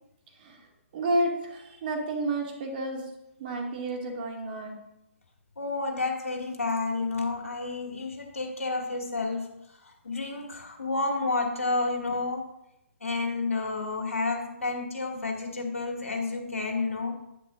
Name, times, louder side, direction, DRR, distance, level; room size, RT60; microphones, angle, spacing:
voice 1, 0.4-0.7 0.9-3.1 3.4-4.8, right 1 dB, 40° right, 1 dB, 2.3 m, -30 dB
voice 2, 5.6-9.5 10.0-12.4 13.0-17.1, left 3 dB, 80° left, 1 dB, 2.4 m, -30 dB
10.5 x 9.6 x 2.6 m, 0.84 s
figure-of-eight pair, 135°, 7 cm